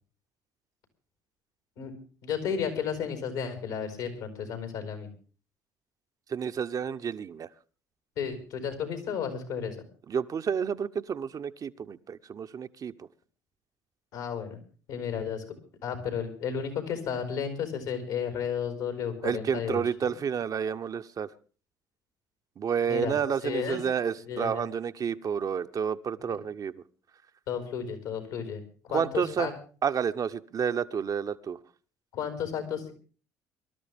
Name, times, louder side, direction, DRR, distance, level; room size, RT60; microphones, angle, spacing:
voice 1, 2.2-5.1 8.2-9.8 14.1-14.6 14.9-15.4 15.8-20.1 22.9-23.1 23.4-23.8 24.2-24.6 26.3-26.4 27.5-29.5 32.1-32.9, left 7 dB, 80° left, 5 dB, 4.4 m, -33 dB
voice 2, 6.3-7.5 10.1-13.1 19.2-21.3 22.6-26.7 28.9-29.5 29.8-31.6, right 7 dB, 45° right, 9 dB, 0.8 m, -30 dB
23.5 x 12.5 x 3.5 m, 0.39 s
hypercardioid pair, 55°, 9 cm